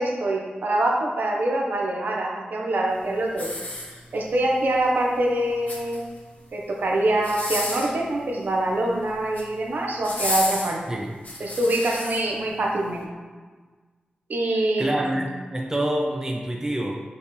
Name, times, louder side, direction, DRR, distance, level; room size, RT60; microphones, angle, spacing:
voice 1, 0.0-3.5 4.1-6.0 6.5-10.8 11.4-13.1 14.3-15.2, right 1 dB, 70° right, 0 dB, 1.1 m, -24 dB
sound 1, 3.3-4.3 5.4-6.2 7.2-8.0 9.1-9.5 10.0-12.2 12.8-12.9, left 1 dB, 65° left, 1.6 m, -31 dB
voice 2, 14.8-16.9, right 1 dB, 15° right, 0 dB, 0.6 m, -26 dB
7.0 x 5.3 x 3.3 m, 1.4 s
wide cardioid pair, 90°, 3 cm